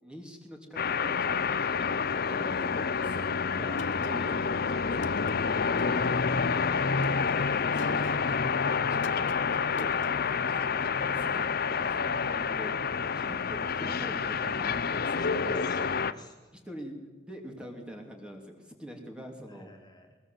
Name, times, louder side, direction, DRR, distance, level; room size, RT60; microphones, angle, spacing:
voice 1, 0.0-7.1 7.8-9.9 10.5-10.9 11.1-11.4 11.7-12.7 13.1-15.7 16.7-19.7, equal, 5° right, 2 dB, 2.9 m, -45 dB
sound 1, 0.8-16.1, left 5 dB, 55° left, 0.7 m, -28 dB
sound 2, 3.8-4.5 5.0-6.5 7.0-8.4 9.0-10.5, left 3 dB, 75° left, 1.0 m, -46 dB
voice 2, 13.7-16.4 19.5-20.2, left 1 dB, 20° left, 2 dB, 2.8 m, -51 dB
21.0 x 20.5 x 7.7 m, 1.3 s
head